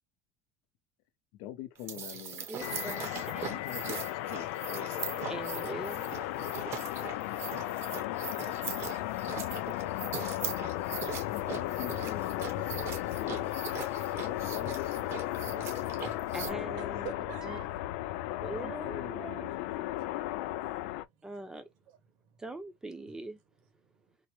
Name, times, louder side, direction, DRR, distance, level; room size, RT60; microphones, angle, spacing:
voice 1, 1.3-2.9 3.4-5.3 11.3-13.6 14.2-15.7 16.5-17.0 18.4-20.0, left 12 dB, 70° left, 1.0 m, -44 dB
sound 1, 1.7-16.5, right 7 dB, 40° right, 0.9 m, -41 dB
voice 2, 2.5-3.6 5.3-6.0 6.8-6.9 16.3-17.1 17.5-17.6 18.4-19.5 21.2-21.7 22.4-23.4, right 2 dB, 10° right, 0.7 m, -42 dB
sound 2, 2.6-21.1, left 15 dB, 90° left, 0.4 m, -35 dB
voice 3, 12.5-12.9 13.4-14.9 15.3-18.5 19.9-22.4 23.0-24.2, right 8 dB, 70° right, 1.3 m, -52 dB
4.2 x 2.1 x 3.0 m
cardioid pair, 145°, 7 cm